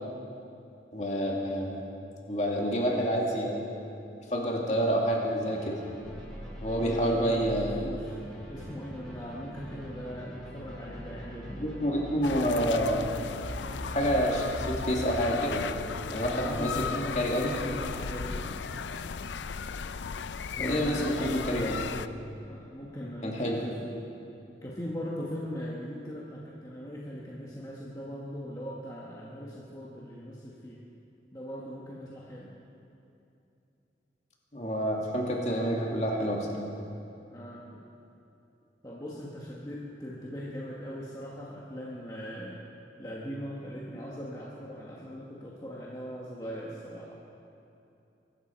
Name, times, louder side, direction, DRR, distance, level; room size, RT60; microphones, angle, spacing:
voice 1, 0.9-1.9 2.3-3.7 4.3-5.8 6.6-7.8 11.6-13.0 13.8-15.7 16.1-16.7 17.2-17.5 20.6-22.1 23.2-23.6 34.5-36.7, equal, 40° left, -1 dB, 2.4 m, -28 dB
sound 1, 5.4-14.7, equal, ahead, 4.9 m, -47 dB
sound 2, 6.0-19.8, equal, 75° right, 4.1 m, -44 dB
voice 2, 6.7-7.5 7.8-8.2 8.4-11.6 16.3-18.6 20.6-21.5 22.5-23.9 24.6-30.8 31.3-32.5 37.3-37.8 38.8-42.6 43.0-47.2, equal, 20° left, -5 dB, 1.5 m, -40 dB
sound 3, 12.2-22.1, left 6 dB, 90° left, 0.5 m, -36 dB
23.5 x 12.5 x 4.5 m, 2.8 s
head